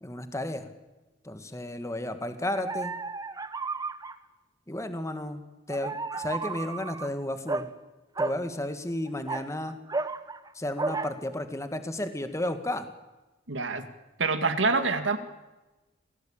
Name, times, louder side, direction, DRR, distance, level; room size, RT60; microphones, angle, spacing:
voice 1, 0.0-0.6 1.3-2.9 4.7-5.4 5.7-7.7 8.2-9.8 10.6-12.9, left 1 dB, 15° left, 8 dB, 2.0 m, -33 dB
sound 1, 2.6-4.1 5.7-7.1 7.5-7.7 8.2-8.4 9.1-10.5 10.8-11.1, right 3 dB, 20° right, 1.0 m, -32 dB
voice 2, 13.5-13.9 14.2-15.2, right 3 dB, 70° right, 8 dB, 2.2 m, -26 dB
27.0 x 17.5 x 8.9 m, 1.1 s
head